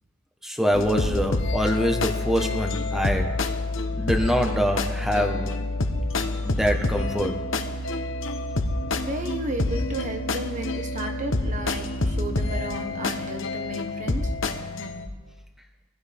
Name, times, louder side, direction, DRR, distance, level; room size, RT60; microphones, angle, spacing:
voice 1, 0.4-3.3 4.0-5.6 6.4-7.4, equal, ahead, 3 dB, 1.3 m, -25 dB
sound 1, 0.7-15.1, left 2 dB, 70° left, 1.2 m, -28 dB
sound 2, 5.3-13.8, left 6 dB, 45° left, 1.2 m, -43 dB
voice 2, 9.0-14.3, right 1 dB, 35° right, 4 dB, 1.5 m, -33 dB
24.5 x 16.0 x 3.7 m, 1.3 s
head